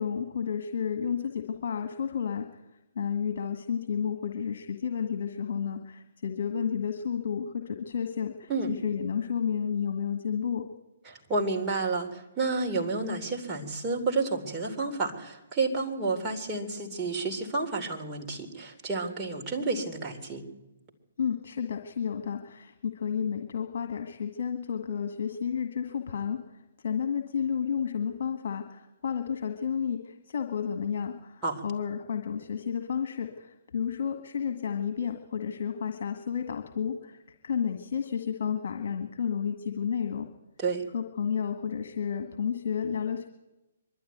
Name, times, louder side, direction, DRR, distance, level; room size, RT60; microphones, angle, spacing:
voice 1, 0.0-2.5 3.0-8.5 8.8-10.6 21.2-26.4 26.8-37.2 37.4-40.3 40.9-43.3, left 7 dB, 55° left, 5 dB, 1.8 m, -31 dB
voice 2, 11.0-20.4 31.4-31.6 40.6-40.8, right 3 dB, 20° right, -1 dB, 3.1 m, -30 dB
23.5 x 12.0 x 9.4 m, 0.99 s
figure-of-eight pair, 135°, 0 cm